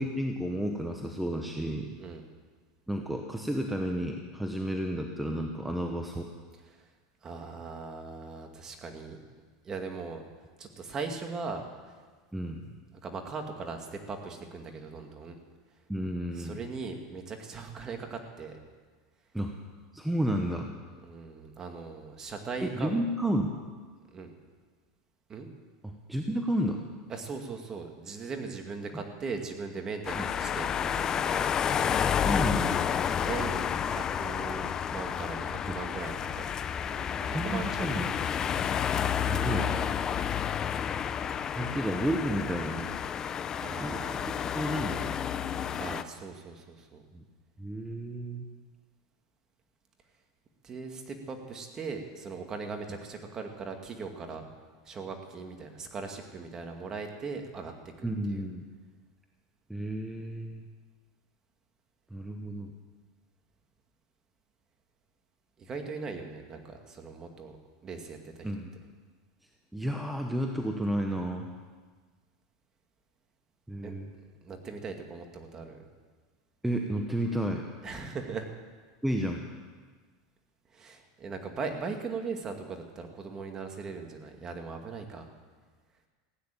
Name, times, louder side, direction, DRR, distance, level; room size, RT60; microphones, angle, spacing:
voice 1, 0.0-1.9 2.9-6.3 12.3-12.7 15.9-16.6 19.3-19.5 19.9-20.7 22.6-23.6 25.8-26.8 28.9-29.0 30.2-30.3 32.2-32.9 37.3-38.1 39.2-39.7 41.5-42.9 43.8-44.2 44.5-45.1 47.1-47.2 47.6-48.4 58.0-58.6 59.7-60.6 62.1-62.7 68.4-68.7 69.7-71.5 73.7-74.1 76.6-77.6 79.0-79.4, right 1 dB, 5° right, 3 dB, 1.1 m, -31 dB
voice 2, 7.2-9.2 9.6-10.2 10.6-11.6 13.0-15.4 16.3-18.6 21.0-22.9 24.1-24.3 25.3-25.5 27.1-31.5 33.2-36.6 36.9-37.9 43.6-44.4 45.8-47.0 50.6-54.5 54.8-57.7 58.0-58.5 65.6-68.5 73.8-73.9 74.4-75.9 77.8-78.5 80.7-85.3, right 4 dB, 25° right, 4 dB, 2.2 m, -39 dB
sound 1, 30.0-46.0, left 8 dB, 30° left, 0.6 m, -30 dB
16.0 x 9.5 x 9.1 m, 1.5 s
supercardioid pair, 120°, 2 cm